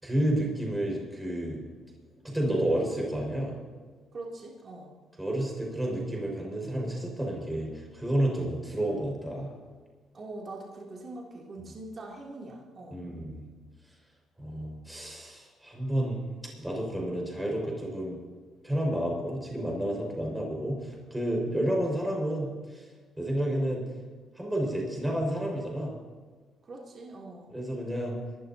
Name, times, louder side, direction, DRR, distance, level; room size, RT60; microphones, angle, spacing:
voice 1, 0.0-1.6 2.2-3.6 5.2-9.5 12.9-13.4 14.4-16.2 16.6-18.2 18.6-22.9 23.2-23.8 24.4-25.9 27.5-28.2, right 1 dB, 10° right, -2 dB, 5.6 m, -30 dB
voice 2, 4.1-4.9 10.1-13.0 26.6-27.5, right 2 dB, 45° right, -3 dB, 3.1 m, -43 dB
25.5 x 13.0 x 2.9 m, 1.5 s
cardioid pair, 90°, 0 cm